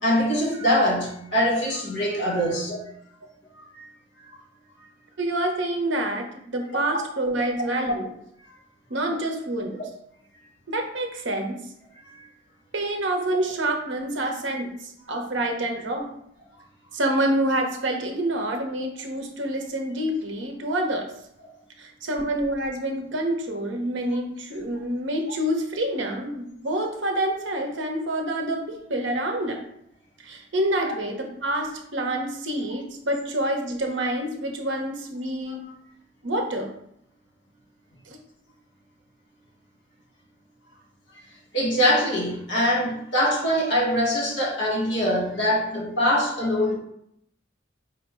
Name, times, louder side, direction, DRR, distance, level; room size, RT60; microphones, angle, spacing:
voice 1, 0.0-2.8 3.7-3.8 30.9-31.0 41.5-46.8, equal, 65° left, -1 dB, 1.2 m, -23 dB
voice 2, 5.2-8.1 8.9-9.8 10.7-11.6 12.7-16.1 16.9-21.1 21.8-29.6 30.2-35.6 36.2-36.7 38.1-38.2, right 1 dB, 70° right, 2 dB, 0.8 m, -27 dB
5.1 x 2.1 x 4.3 m, 0.73 s
head